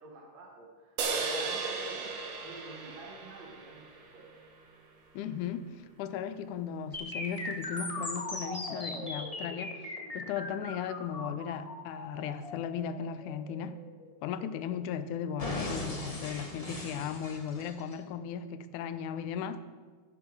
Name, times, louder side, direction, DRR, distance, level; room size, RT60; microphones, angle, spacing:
voice 1, 0.0-4.4, right 3 dB, 65° right, 0 dB, 2.4 m, -49 dB
sound 1, 1.0-4.5, right 4 dB, 80° right, 3.0 m, -36 dB
voice 2, 5.1-13.8 14.2-19.6, left 7 dB, 85° left, 12 dB, 2.2 m, -37 dB
sound 2, 6.9-14.9 15.4-17.9, left 2 dB, 20° left, 1.1 m, -39 dB
15.5 x 11.0 x 4.6 m, 1.4 s
omnidirectional pair, 3.4 m